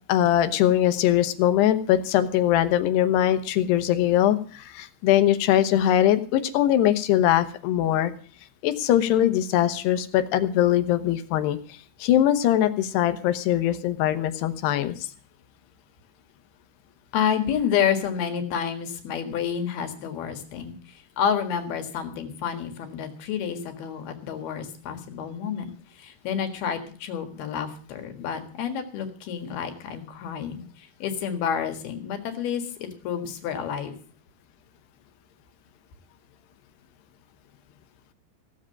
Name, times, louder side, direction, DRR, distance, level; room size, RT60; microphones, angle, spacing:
voice 1, 0.1-8.1 8.6-11.6 12.0-14.9, left 12 dB, 85° left, 10 dB, 3.1 m, -21 dB
voice 2, 17.1-20.8 21.2-25.7 26.0-30.6 31.0-33.9, left 8 dB, 70° left, 7 dB, 3.6 m, -29 dB
16.5 x 7.6 x 7.6 m, 0.42 s
omnidirectional pair, 4.7 m